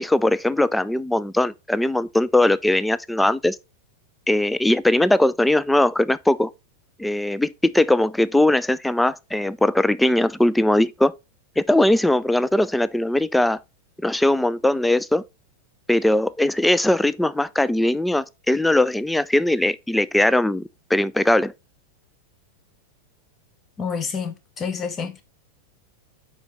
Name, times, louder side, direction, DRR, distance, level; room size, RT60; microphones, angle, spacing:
voice 1, 0.0-3.6 4.3-6.5 7.0-11.1 11.6-13.6 14.0-15.2 15.9-21.5, left 1 dB, 5° left, 0.4 m, -20 dB
voice 2, 23.8-25.2, left 6 dB, 20° left, 1.1 m, -28 dB
5.0 x 4.9 x 4.1 m
figure-of-eight pair, 90°, 0 cm